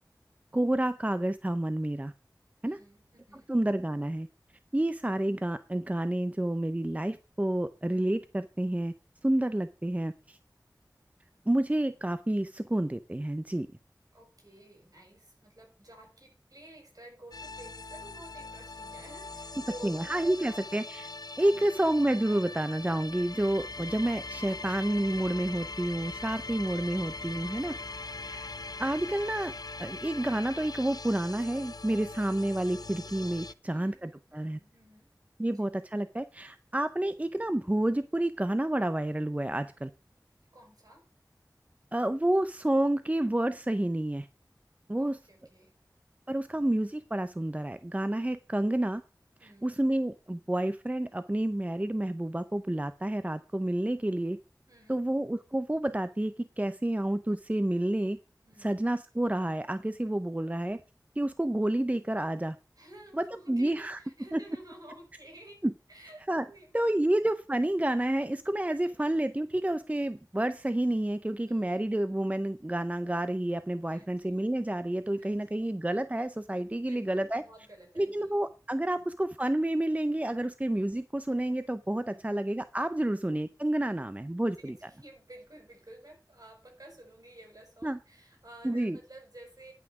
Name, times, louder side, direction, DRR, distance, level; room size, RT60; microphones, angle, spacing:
voice 1, 0.5-2.1 2.6-2.8 3.5-4.3 4.7-8.9 9.2-10.4 11.5-13.7 19.8-21.1 21.4-27.7 28.2-28.5 28.8-29.5 29.8-34.6 35.4-39.9 41.9-44.3 44.9-45.2 46.3-49.0 49.6-54.4 54.9-58.2 58.6-60.8 61.2-62.6 63.2-64.0 64.3-64.4 65.6-65.7 66.3-66.4 66.7-77.4 78.0-84.9 87.8-88.0 88.6-89.0, right 1 dB, 20° right, 11 dB, 0.6 m, -29 dB
voice 2, 2.6-3.5 14.1-20.6 21.4-21.8 28.0-28.3 33.6-35.1 35.5-35.6 40.5-41.0 44.9-45.7 46.5-46.6 49.4-49.7 54.7-55.0 58.4-58.7 62.7-67.0 68.7-69.1 71.5-71.8 73.9-74.4 75.1-75.7 76.7-78.3 78.9-79.1 82.0-82.2 83.0-83.3 83.9-84.0 84.4-89.7, right 1 dB, 60° right, 3 dB, 5.4 m, -52 dB
sound 1, 17.3-33.5, left 3 dB, 65° left, 0.5 m, -41 dB
11.0 x 6.1 x 5.8 m, 0.33 s
wide cardioid pair, 45°, 7 cm